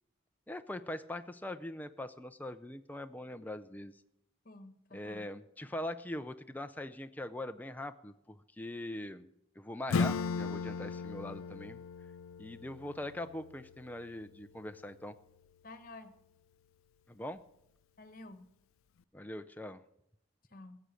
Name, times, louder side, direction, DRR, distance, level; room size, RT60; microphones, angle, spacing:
voice 1, 0.5-4.0 4.9-9.3 9.6-11.8 12.4-15.2 17.1-17.4 19.1-19.8, left 1 dB, 10° left, 8 dB, 0.5 m, -42 dB
voice 2, 4.4-5.3 15.6-16.1 18.0-18.5 20.5-20.8, left 2 dB, 45° left, 11 dB, 1.3 m, -51 dB
Acoustic guitar / Strum, 9.9-15.1, left 4 dB, 80° left, 0.4 m, -37 dB
15.0 x 7.7 x 8.2 m, 0.79 s
head